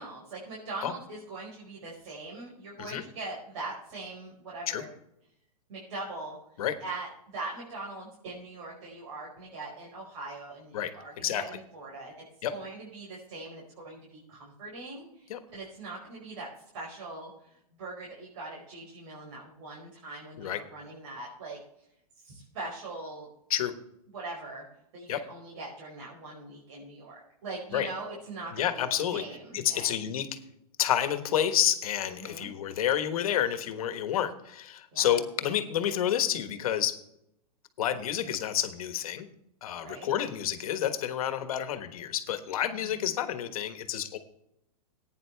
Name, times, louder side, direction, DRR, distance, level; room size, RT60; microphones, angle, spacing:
voice 1, 0.0-4.9 5.7-6.4 6.8-12.1 12.5-16.5 16.7-17.5 17.8-21.6 22.2-23.3 24.1-24.6 24.9-28.8 29.1-30.1 32.1-32.5 34.9-35.2 39.8-40.1 42.7-43.1, right 2 dB, 55° right, -4 dB, 5.1 m, -41 dB
voice 2, 10.7-11.4 12.4-12.5 15.3-15.4 20.4-20.6 23.5-23.7 25.1-25.2 27.7-27.9 28.5-29.2 29.5-30.3 30.8-37.0 37.8-39.3 39.6-44.2, left 10 dB, 65° left, 9 dB, 1.4 m, -29 dB
16.0 x 9.5 x 3.4 m, 0.79 s
hypercardioid pair, 150°, 20 cm